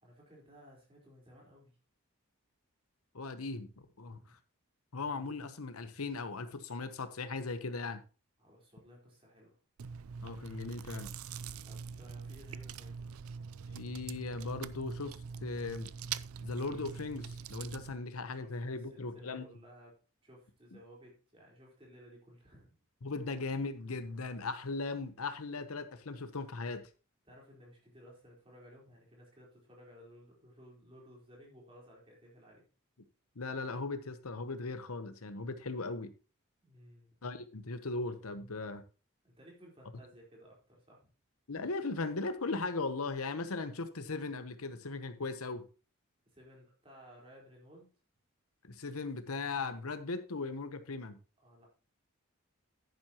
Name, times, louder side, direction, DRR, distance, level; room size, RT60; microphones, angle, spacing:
voice 1, 0.0-1.8 4.1-4.3 8.4-9.6 11.6-13.0 18.2-22.8 27.3-32.6 36.6-37.1 39.2-41.1 46.3-47.9 51.4-51.7, equal, 25° right, 4.1 m, -57 dB
voice 2, 3.1-4.2 4.9-8.0 10.2-11.1 13.7-15.1 15.4-15.9 16.4-19.4 23.0-26.8 33.4-36.1 37.2-38.8 41.5-45.6 48.6-51.2, left 3 dB, 80° left, 1.0 m, -38 dB
Chewing mastication, 9.8-17.9, right 6 dB, 80° right, 0.4 m, -43 dB
10.5 x 9.5 x 3.0 m
head